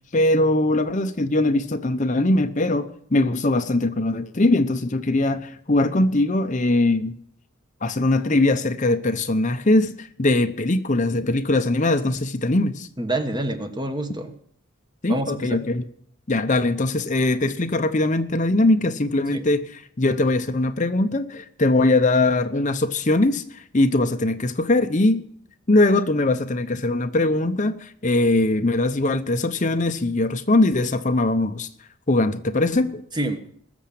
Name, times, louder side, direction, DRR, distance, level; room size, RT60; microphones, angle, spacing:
voice 1, 0.1-7.1 7.8-12.9 15.0-15.9 16.3-25.2 25.7-31.7 32.1-33.0, left 2 dB, 35° left, 0.8 m, -21 dB
voice 2, 13.0-14.3 15.1-15.6 19.3-19.4 33.1-33.6, right 1 dB, 20° right, 1.3 m, -27 dB
20.5 x 7.1 x 8.6 m
head